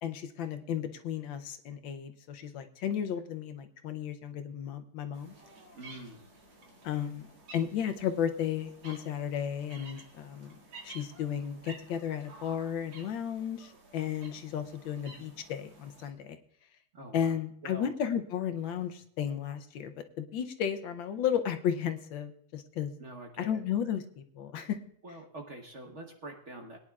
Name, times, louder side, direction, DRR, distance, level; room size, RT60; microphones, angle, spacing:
voice 1, 0.0-5.3 6.8-10.6 10.8-16.4 17.1-22.9 23.4-24.8, left 9 dB, 75° left, 8 dB, 1.4 m, -34 dB
sound 1, 5.1-16.1, right 2 dB, 80° right, 3.0 m, -53 dB
voice 2, 5.7-6.2 16.9-17.3 17.6-17.9 18.7-18.8 23.0-23.6 25.0-26.8, right 1 dB, 45° right, 2 dB, 1.1 m, -45 dB
22.0 x 10.0 x 2.4 m, 0.66 s
omnidirectional pair, 2.3 m